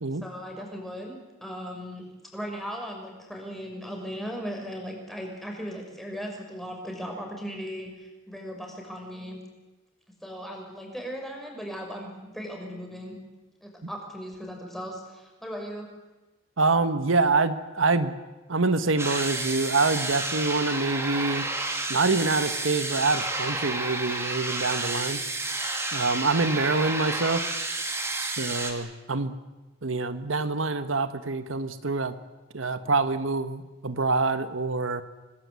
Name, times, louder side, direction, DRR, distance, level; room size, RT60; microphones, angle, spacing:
voice 1, 0.2-2.1 2.3-9.4 10.2-13.2 13.6-15.9 25.4-25.5, equal, ahead, 1 dB, 6.0 m, -37 dB
voice 2, 16.6-18.1 18.5-21.4 21.9-25.2 25.9-27.4 28.1-29.3 29.8-32.2 32.5-35.0, right 3 dB, 80° right, 10 dB, 1.4 m, -26 dB
sound 1, 19.0-28.7, right 2 dB, 15° right, 2.9 m, -31 dB
26.0 x 19.0 x 8.4 m, 1.1 s
head